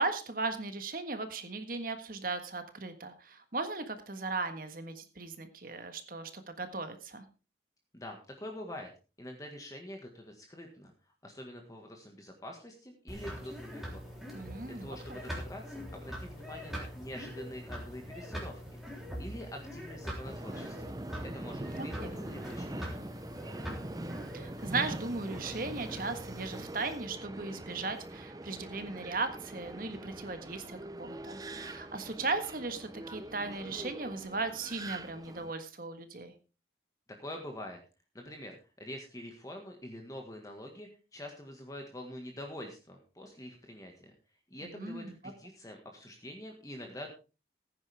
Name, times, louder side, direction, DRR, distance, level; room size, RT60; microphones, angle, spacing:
voice 1, 0.0-7.2 14.3-15.2 21.8-22.2 24.3-36.3 44.6-45.1, right 3 dB, 50° right, 8 dB, 1.6 m, -37 dB
voice 2, 7.9-8.9 9.2-10.9 11.2-14.1 14.4-20.9 21.2-23.2 37.2-37.8 38.1-44.1 44.5-47.1, left 1 dB, 20° left, 3 dB, 1.7 m, -45 dB
sound 1, 13.1-26.6, equal, ahead, 3.5 m, -43 dB
Subway metro underground, 20.2-35.5, right 1 dB, 20° right, 0.7 m, -43 dB
16.0 x 9.6 x 3.5 m, 0.32 s
head